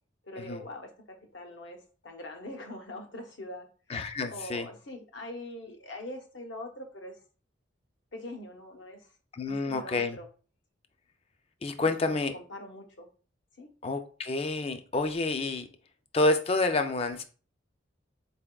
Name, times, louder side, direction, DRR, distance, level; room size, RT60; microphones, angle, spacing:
voice 1, 0.2-3.7 4.3-7.2 8.1-9.1 9.5-10.3 11.8-13.1 13.6-13.7, left 1 dB, 70° left, 4 dB, 0.8 m, -43 dB
voice 2, 3.9-4.7 9.3-10.2 11.6-12.3 13.8-15.7 16.1-17.2, left 2 dB, 30° left, 8 dB, 0.4 m, -28 dB
4.3 x 3.4 x 2.3 m, 0.39 s
head